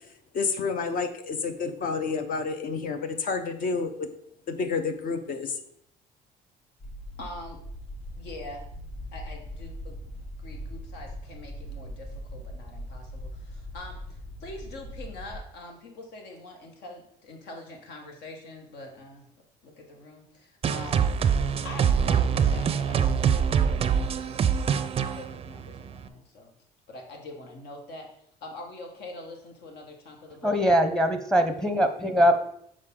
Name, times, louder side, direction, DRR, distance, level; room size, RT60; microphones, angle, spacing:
voice 1, 0.3-4.1 4.5-5.6, left 4 dB, 55° left, 8 dB, 0.7 m, -29 dB
sound 1, 6.8-15.4, equal, 35° left, 2.2 m, -40 dB
voice 2, 7.2-7.6 8.2-8.6 9.1-10.0 10.4-19.3 19.6-21.1 21.6-23.9 24.2-24.5 24.9-26.5 26.9-28.1 28.4-30.6, left 2 dB, 80° left, 2 dB, 1.3 m, -44 dB
sound 2, 20.6-26.1, right 7 dB, 35° right, 0.4 m, -24 dB
voice 3, 30.4-32.5, equal, 5° left, 7 dB, 0.7 m, -22 dB
6.4 x 4.8 x 3.7 m, 0.70 s
cardioid pair, 110°, 17 cm